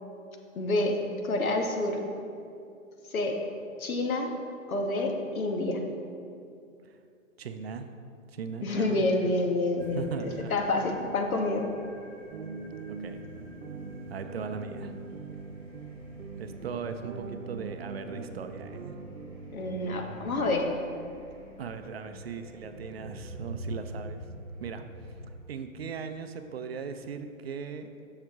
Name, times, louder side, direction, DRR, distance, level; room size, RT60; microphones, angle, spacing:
voice 1, 0.5-1.0 1.2-2.0 3.1-3.4 3.8-4.3 4.7-5.8 8.6-10.1 10.5-11.6 19.5-20.6, left 2 dB, 85° left, 3 dB, 1.2 m, -28 dB
voice 2, 7.4-7.9 8.3-9.0 9.9-10.5 12.9-13.2 14.1-14.9 16.4-19.0 21.6-24.2 24.6-24.8 25.5-27.9, right 6 dB, 50° right, 8 dB, 0.5 m, -38 dB
sound 1, 9.8-25.3, equal, 10° left, 0.6 m, -47 dB
sound 2, 12.3-20.6, right 4 dB, 80° right, 0.8 m, -42 dB
7.6 x 6.5 x 3.6 m, 2.5 s
hypercardioid pair, 155°, 41 cm